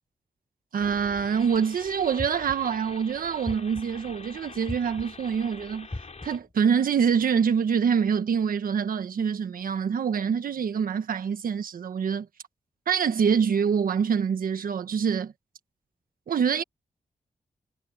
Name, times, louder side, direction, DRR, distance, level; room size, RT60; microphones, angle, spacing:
voice 1, 0.7-5.9 6.2-12.3 12.9-15.3 16.3-16.6, right 7 dB, 85° right, 1.5 m, -25 dB
sound 1, 0.8-6.4, left 4 dB, 50° left, 6.4 m, -45 dB
sound 2, 2.2-2.8 3.5-4.1 4.7-5.3 5.9-6.6, left 2 dB, 25° left, 5.1 m, -39 dB
cardioid pair, 70°, 14 cm